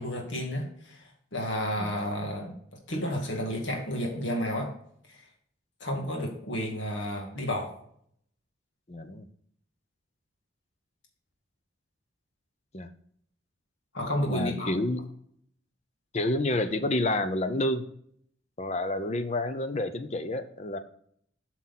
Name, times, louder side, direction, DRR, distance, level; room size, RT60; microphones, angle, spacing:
voice 1, 0.0-2.5 2.9-4.7 5.1-5.2 5.8-7.7 13.9-14.8, equal, 70° left, 1 dB, 2.2 m, -31 dB
voice 2, 8.9-9.3 12.7-12.9 14.3-15.1 16.1-17.9 18.6-20.8, left 1 dB, 35° left, 10 dB, 0.7 m, -29 dB
7.9 x 6.2 x 4.2 m, 0.65 s
head